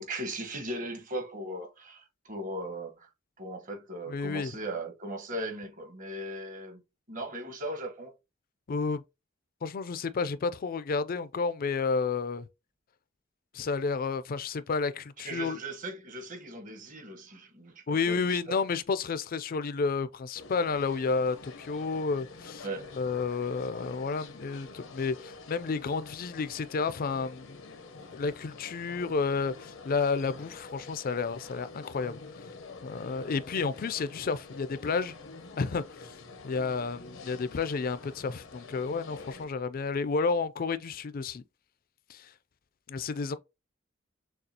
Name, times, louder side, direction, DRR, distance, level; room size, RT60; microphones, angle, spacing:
voice 1, 0.0-3.1 3.4-6.8 7.1-8.1 15.2-18.6 22.6-22.9, right 1 dB, 45° right, 1.3 m, -38 dB
voice 2, 4.1-4.5 8.7-9.0 9.6-12.5 13.5-15.6 17.9-22.7 23.0-27.8 28.1-32.2 32.8-35.1 35.6-36.2 36.4-41.4 42.1-42.3 42.9-43.4, left 4 dB, 45° left, 0.4 m, -31 dB
sound 1, 20.4-39.5, left 3 dB, 90° left, 0.8 m, -47 dB
6.5 x 2.4 x 2.8 m
head